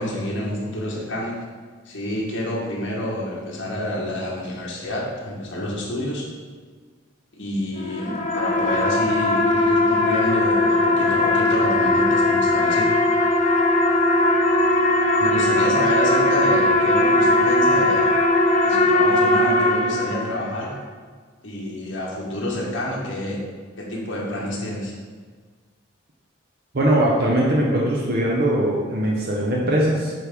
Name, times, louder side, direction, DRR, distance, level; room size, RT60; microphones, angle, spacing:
voice 1, 0.0-1.3 1.8-6.3 7.3-12.9 15.2-18.1 18.6-20.7 21.4-23.4 23.8-24.9, left 1 dB, 75° left, -4 dB, 1.4 m, -28 dB
sound 1, 7.8-20.6, left 2 dB, 35° left, 0.6 m, -19 dB
voice 2, 26.7-30.1, right 1 dB, 50° right, -4 dB, 0.8 m, -20 dB
9.0 x 3.2 x 3.5 m, 1.5 s
head